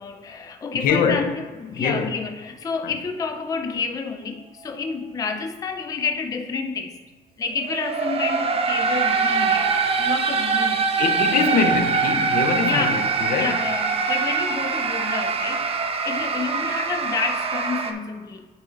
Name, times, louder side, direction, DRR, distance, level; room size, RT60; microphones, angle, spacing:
voice 1, 0.0-7.0 7.4-10.9 12.6-13.1 13.3-15.7 16.0-18.5, left 5 dB, 20° left, 0.4 m, -29 dB
voice 2, 0.8-1.3 1.7-2.1 11.0-13.6, left 6 dB, 55° left, 0.7 m, -23 dB
sound 1, 7.6-17.9, right 5 dB, 35° right, 0.6 m, -23 dB
9.8 x 3.8 x 3.8 m
cardioid pair, 110°, 17 cm